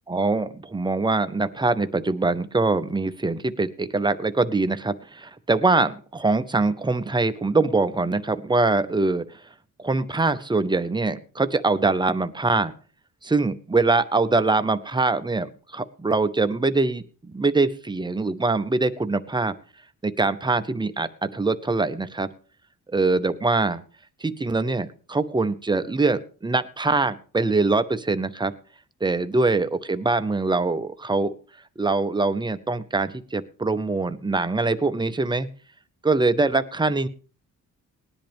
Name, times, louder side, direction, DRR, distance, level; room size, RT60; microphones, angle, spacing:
voice 1, 0.1-9.2 9.8-12.7 13.2-19.5 20.0-22.3 22.9-23.8 24.2-28.5 29.0-31.3 31.8-35.5 36.0-37.1, right 3 dB, 15° right, 11 dB, 0.6 m, -23 dB
19.0 x 10.5 x 3.5 m, 0.40 s
wide cardioid pair, 150°, 34 cm